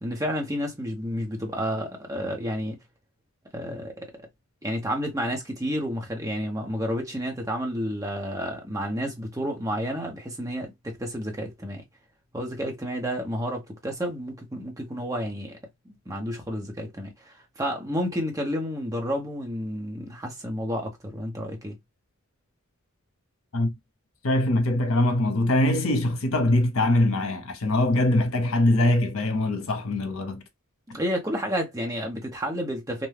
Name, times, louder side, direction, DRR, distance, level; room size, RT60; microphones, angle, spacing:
voice 1, 0.0-2.8 3.5-4.3 4.6-11.8 12.3-15.6 15.8-21.8 30.9-33.1, equal, 15° right, 0.8 m, -30 dB
voice 2, 24.2-30.4, left 1 dB, 70° left, 0.8 m, -22 dB
2.6 x 2.2 x 3.2 m
head